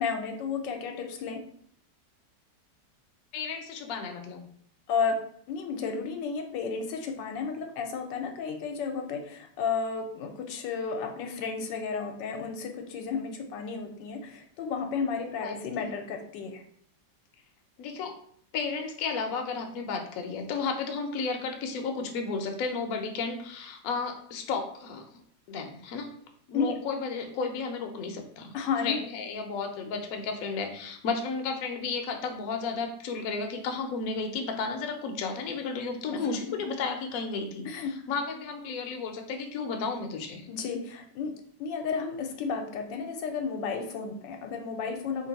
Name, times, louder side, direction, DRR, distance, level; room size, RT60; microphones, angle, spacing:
voice 1, 0.0-1.4 4.9-5.2 5.5-16.6 26.5-26.8 28.5-29.0 37.6-37.9 40.5-41.3 41.6-45.3, left 5 dB, 85° left, 4 dB, 1.3 m, -32 dB
voice 2, 3.3-4.4 15.4-15.9 17.8-18.1 18.5-25.0 25.5-26.1 26.5-28.5 28.8-40.5, left 4 dB, 65° left, 4 dB, 0.9 m, -33 dB
3.0 x 2.5 x 3.9 m, 0.62 s
omnidirectional pair, 1.9 m